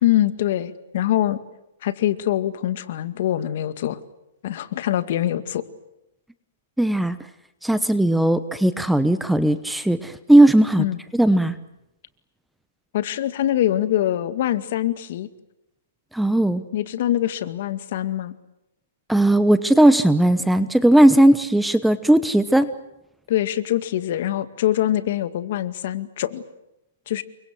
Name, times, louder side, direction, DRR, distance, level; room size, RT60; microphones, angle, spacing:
voice 1, 0.0-1.4 1.8-4.0 4.4-5.6 10.8-11.0 12.9-15.3 16.7-18.3 23.3-26.4 27.1-27.2, left 12 dB, 55° left, 12 dB, 2.2 m, -23 dB
voice 2, 6.8-7.2 7.6-10.8 11.1-11.5 16.1-16.6 19.1-22.7, right 1 dB, ahead, 13 dB, 1.0 m, -17 dB
29.5 x 24.5 x 7.7 m, 0.90 s
hypercardioid pair, 150°, 0 cm